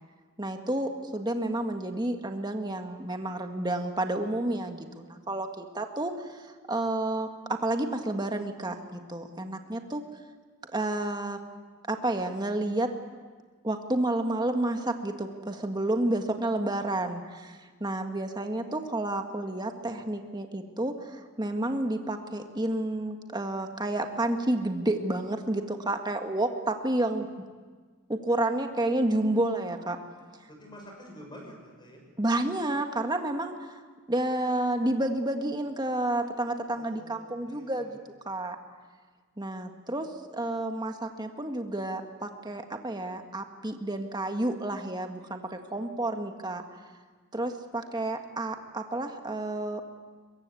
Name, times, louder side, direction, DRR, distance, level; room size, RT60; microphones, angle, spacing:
voice 1, 0.4-10.0 10.7-11.4 11.9-12.9 13.6-27.3 28.1-30.0 32.2-33.8 34.1-38.0 38.3-38.6 39.4-46.6 47.3-49.8, right 1 dB, 20° right, 5 dB, 1.7 m, -30 dB
voice 2, 30.5-32.0 36.7-38.0, equal, 20° left, 1 dB, 6.5 m, -48 dB
23.0 x 22.5 x 8.4 m, 1.5 s
head